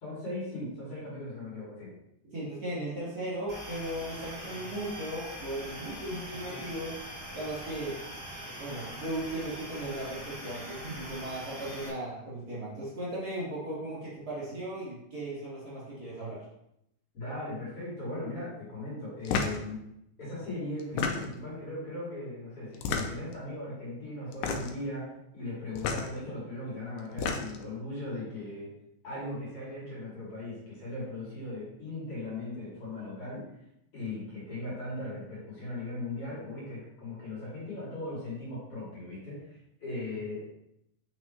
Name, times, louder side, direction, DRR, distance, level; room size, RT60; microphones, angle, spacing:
voice 1, 0.0-1.9 17.1-19.8 20.2-28.7 29.0-33.5 33.9-40.5, left 2 dB, 45° left, -7 dB, 3.4 m, -38 dB
voice 2, 2.3-6.9 7.3-8.0 8.6-16.4, right 1 dB, 30° right, -9 dB, 3.4 m, -37 dB
sound 1, 3.5-11.9, equal, 5° left, 2.1 m, -42 dB
sound 2, 19.3-19.6 20.8-21.5 22.7-23.3 24.3-24.8 25.8-26.1 27.0-27.7, left 5 dB, 85° left, 2.3 m, -31 dB
8.9 x 5.4 x 3.1 m, 0.80 s
omnidirectional pair, 3.8 m